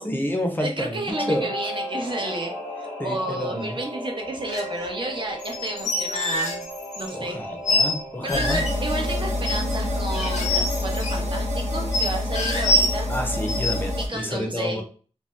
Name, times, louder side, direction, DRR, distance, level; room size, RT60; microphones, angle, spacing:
voice 1, 0.0-1.5 3.0-3.8 7.1-8.6 13.1-14.8, equal, 15° left, 3 dB, 0.6 m, -29 dB
voice 2, 0.6-6.7 7.0-7.4 8.2-13.1 14.0-14.8, right 1 dB, 45° right, 1 dB, 0.8 m, -31 dB
Singing / Musical instrument, 1.1-11.1 11.4-11.5, equal, 15° right, 1.3 m, -37 dB
sound 1, 4.5-4.7 5.4-7.1 7.6-7.9 8.3-8.7 9.4-9.8 10.1-11.2 11.9-13.1 13.5-13.7 14.1-14.2, left 1 dB, 85° left, 0.7 m, -25 dB
sound 2, 8.3-14.1, left 1 dB, 85° right, 0.9 m, -27 dB
2.6 x 2.2 x 3.3 m, 0.40 s
wide cardioid pair, 75°, 11 cm